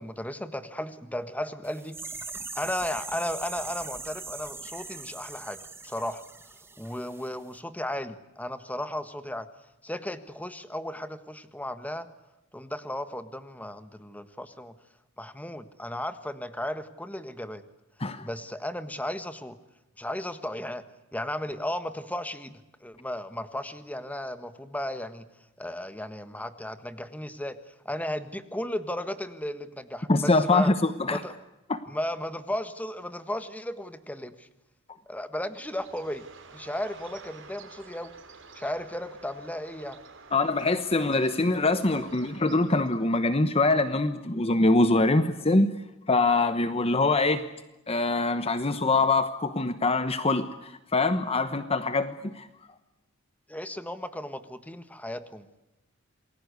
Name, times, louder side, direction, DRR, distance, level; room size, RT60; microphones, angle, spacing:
voice 1, 0.0-2.0 2.5-5.6 5.8-6.2 6.8-9.5 9.8-12.1 12.5-14.7 15.2-17.6 18.2-19.6 20.0-20.8 21.1-25.2 25.6-30.7 31.1-31.3 31.9-34.5 35.1-36.2 36.5-38.1 38.5-40.0 53.5-55.5, left 1 dB, 5° left, 11 dB, 1.5 m, -35 dB
sound 1, 1.6-7.3 7.5-7.6, right 4 dB, 10° right, 2.0 m, -41 dB
voice 2, 30.1-31.2 31.7-31.8 40.3-45.7 46.1-47.4 47.9-52.5, left 2 dB, 30° left, 11 dB, 1.1 m, -24 dB
Bird, 35.5-43.2, right 4 dB, 60° right, 5.6 m, -50 dB
28.5 x 20.5 x 8.3 m, 0.99 s
head